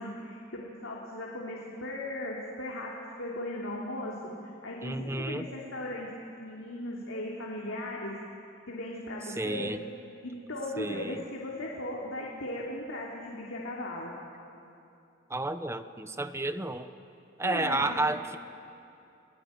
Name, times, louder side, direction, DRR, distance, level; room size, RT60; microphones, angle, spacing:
voice 1, 0.0-4.2 4.6-6.1 6.4-8.1 8.7-9.7 10.2-14.1 17.4-18.0, left 1 dB, 90° left, -3 dB, 3.0 m, -37 dB
voice 2, 4.8-5.5 9.4-9.8 10.8-11.2 15.3-16.9 17.4-18.4, right 2 dB, 15° right, 10 dB, 0.8 m, -31 dB
28.5 x 18.0 x 9.4 m, 2.7 s
head